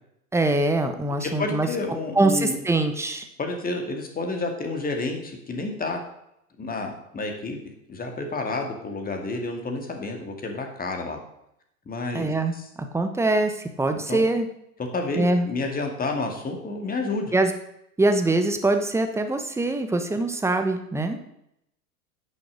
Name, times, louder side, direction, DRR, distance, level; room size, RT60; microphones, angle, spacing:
voice 1, 0.3-1.7 2.1-3.3 12.1-12.5 12.8-14.5 15.2-15.5 17.3-17.5 18.0-21.2, right 2 dB, 5° right, 6 dB, 1.2 m, -23 dB
voice 2, 1.2-2.6 3.4-6.0 6.6-7.6 7.9-11.2 11.9-12.7 14.1-14.2 14.9-17.3, left 3 dB, 20° left, 3 dB, 2.3 m, -30 dB
10.5 x 6.5 x 6.6 m, 0.78 s
figure-of-eight pair, 85°, 44 cm